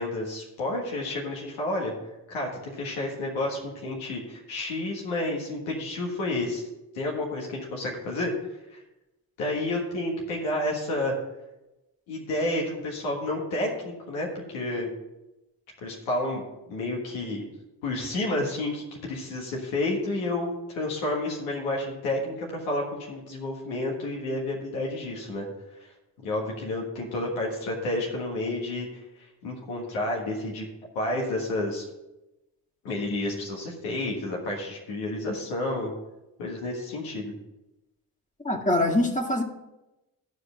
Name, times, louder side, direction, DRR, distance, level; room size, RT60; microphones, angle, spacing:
voice 1, 0.0-1.9 2.3-6.6 6.9-8.3 8.7-8.8 9.4-11.1 12.1-14.9 15.8-16.4 16.7-17.5 17.8-25.4 25.8-25.9 26.2-28.9 29.2-30.6 30.9-31.9 32.8-35.9 36.4-37.3, left 2 dB, 85° left, -2 dB, 1.7 m, -30 dB
voice 2, 38.4-39.4, left 1 dB, 15° left, 1 dB, 1.8 m, -23 dB
12.5 x 4.9 x 5.7 m, 0.97 s
hypercardioid pair, 40°, 46 cm